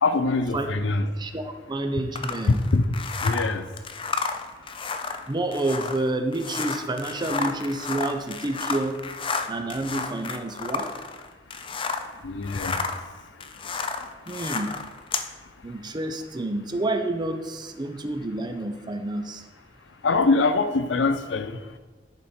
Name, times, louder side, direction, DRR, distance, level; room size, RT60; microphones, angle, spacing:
voice 1, 0.0-1.1 2.7-2.8 3.2-3.6 12.2-12.8 20.0-21.6, left 3 dB, 85° left, 0.6 m, -23 dB
voice 2, 1.2-2.5 5.3-9.0 9.5-10.9 14.3-14.8 15.6-19.5, right 2 dB, 25° right, 0.6 m, -29 dB
sound 1, 2.1-12.1 12.4-15.3, left 4 dB, 30° left, 0.5 m, -32 dB
10.5 x 4.9 x 4.4 m
head